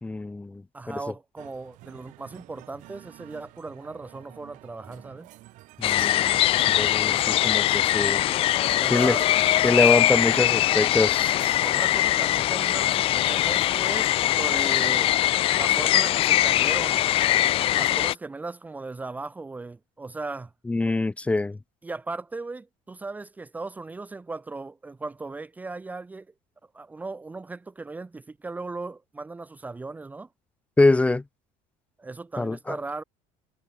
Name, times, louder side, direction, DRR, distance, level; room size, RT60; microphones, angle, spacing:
voice 1, 0.0-0.6 0.9-1.0 5.8-6.4 6.7-8.2 8.9-9.2 9.6-11.4 20.7-21.6 30.8-31.2 32.4-32.8, left 2 dB, 10° left, 1.5 m, -24 dB
voice 2, 0.7-5.3 8.6-9.3 11.6-15.2 15.5-17.0 17.7-20.5 21.8-26.3 26.7-30.3 32.0-33.0, right 3 dB, 10° right, 1.3 m, -37 dB
sound 1, 1.4-13.3, right 19 dB, 60° right, 4.2 m, -49 dB
sound 2, 5.8-18.1, left 14 dB, 40° left, 0.5 m, -22 dB
cardioid pair, 170°, 15 cm